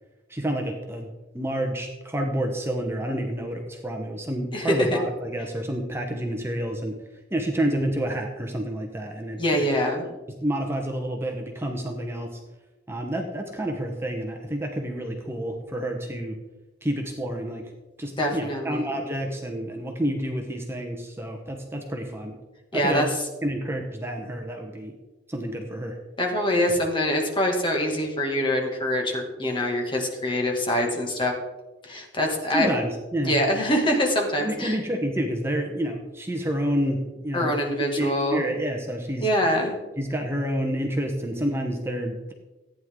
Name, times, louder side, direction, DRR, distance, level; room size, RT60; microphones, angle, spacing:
voice 1, 0.3-1.1 1.3-7.0 7.3-9.7 10.3-12.4 12.9-16.4 16.8-17.7 18.0-22.4 22.7-23.1 23.4-24.9 25.3-26.0 32.5-33.4 34.4-37.5 38.0-39.3 40.0-42.3, right 1 dB, 15° right, 2 dB, 1.0 m, -29 dB
voice 2, 4.5-4.9 9.4-10.1 18.2-18.9 22.7-23.1 26.2-31.3 31.8-32.7 33.2-34.8 37.3-38.4 39.2-39.7, left 1 dB, 30° left, 0 dB, 2.2 m, -24 dB
15.0 x 9.5 x 3.8 m, 1.1 s
head